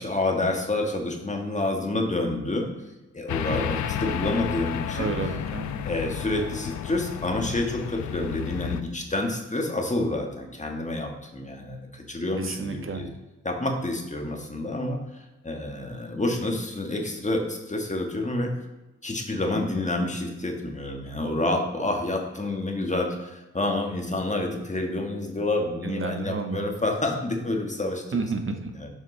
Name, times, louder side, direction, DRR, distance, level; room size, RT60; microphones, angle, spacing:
voice 1, 0.0-2.7 3.1-5.3 5.8-13.1 13.4-18.5 19.0-28.2 28.7-28.9, left 2 dB, 25° left, 2 dB, 1.5 m, -28 dB
sound 1, 3.3-8.8, left 9 dB, 70° left, 0.5 m, -31 dB
voice 2, 5.0-5.9 12.4-13.0 25.8-26.6 28.1-28.7, right 4 dB, 40° right, 5 dB, 1.2 m, -30 dB
7.3 x 5.5 x 3.3 m, 1.1 s
supercardioid pair, 50°, 30 cm